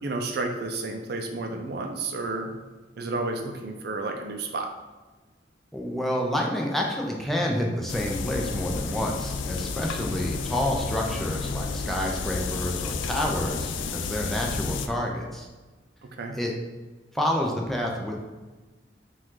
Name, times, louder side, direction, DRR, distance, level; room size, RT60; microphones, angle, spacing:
voice 1, 0.0-2.5 3.0-4.7 16.2-16.4, right 3 dB, 60° right, 4 dB, 0.5 m, -31 dB
voice 2, 5.7-15.5 16.3-16.5 17.1-18.2, left 1 dB, ahead, -1 dB, 0.5 m, -29 dB
sound 1, 7.9-14.9, left 4 dB, 90° left, 0.3 m, -31 dB
4.9 x 2.4 x 3.8 m, 1.3 s
head